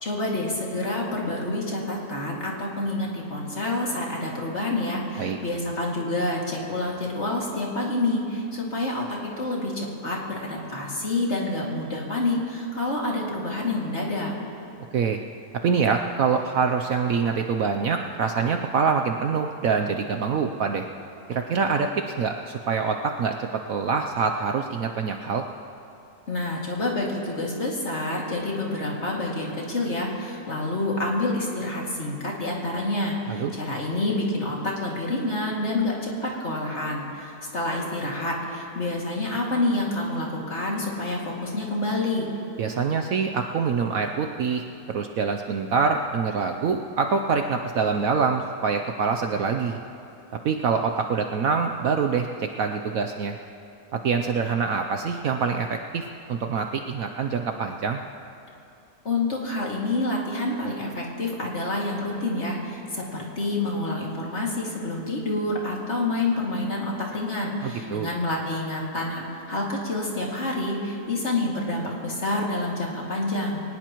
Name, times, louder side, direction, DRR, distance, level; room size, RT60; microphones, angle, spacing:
voice 1, 0.0-14.3 26.3-42.3 59.0-73.6, left 2 dB, 40° left, -3 dB, 2.6 m, -28 dB
voice 2, 15.6-20.9 21.3-25.4 33.3-33.5 42.6-49.8 50.4-53.4 53.9-58.0 67.6-68.1, right 5 dB, 65° right, 5 dB, 0.9 m, -25 dB
22.5 x 19.0 x 3.0 m, 2.6 s
omnidirectional pair, 1.9 m